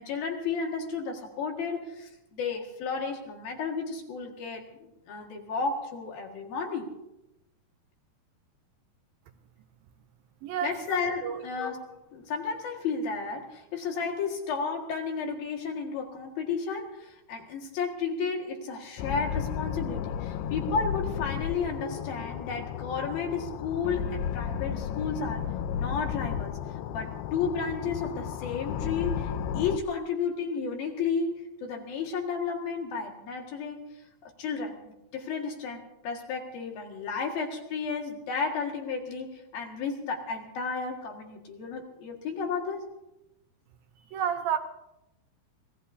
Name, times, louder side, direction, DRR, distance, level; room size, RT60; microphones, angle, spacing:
voice 1, 0.0-6.9 10.6-25.5 25.7-26.6 26.9-33.9 34.2-42.9, left 5 dB, 60° left, 1 dB, 3.5 m, -33 dB
voice 2, 10.4-10.8 11.2-11.4 44.1-44.6, right 9 dB, 75° right, 7 dB, 2.2 m, -29 dB
sound 1, 19.0-29.8, left 8 dB, 80° left, 2.6 m, -33 dB
26.5 x 18.5 x 2.8 m, 0.89 s
omnidirectional pair, 4.9 m